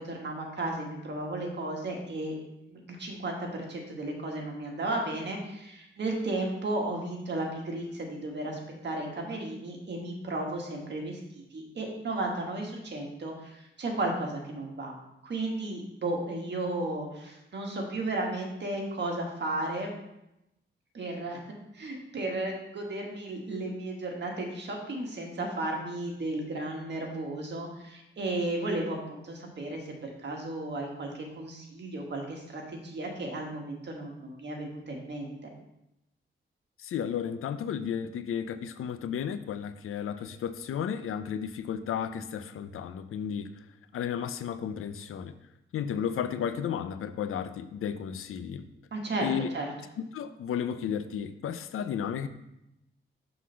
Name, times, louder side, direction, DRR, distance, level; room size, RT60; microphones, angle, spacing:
voice 1, 0.0-2.3 2.7-14.9 15.2-19.9 20.9-21.4 21.7-35.5 48.9-49.7, right 2 dB, 55° right, 1 dB, 1.6 m, -34 dB
voice 2, 36.8-43.5 43.9-45.3 45.7-48.7 49.2-49.5 50.0-52.3, left 8 dB, 90° left, 12 dB, 0.5 m, -33 dB
6.2 x 4.0 x 5.7 m, 0.87 s
wide cardioid pair, 105°, 21 cm